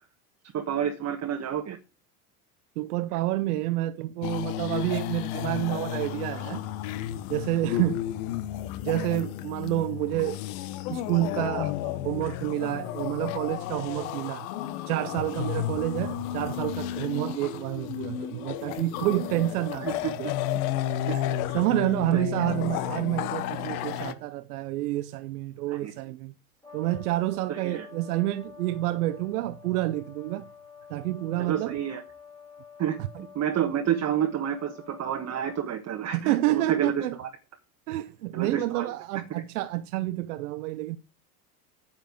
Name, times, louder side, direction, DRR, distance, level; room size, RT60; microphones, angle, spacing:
voice 1, 0.5-1.8 7.7-7.8 19.8-20.3 21.1-21.2 22.1-22.3 25.7-25.9 27.6-27.9 31.4-32.0 32.8-37.3 38.3-38.9, right 9 dB, 35° right, 1.3 m, -29 dB
voice 2, 2.8-6.7 7.3-8.0 8.8-10.4 10.9-14.5 14.9-20.6 21.1-21.3 21.5-26.3 26.7-30.5 30.9-31.8 36.1-37.2 37.9-41.0, right 16 dB, 80° right, 0.7 m, -29 dB
sound 1, 4.2-24.1, left 12 dB, 65° left, 1.1 m, -32 dB
Brass instrument, 26.6-35.7, left 6 dB, 10° left, 2.7 m, -48 dB
9.6 x 6.7 x 5.1 m
hypercardioid pair, 85°, 45 cm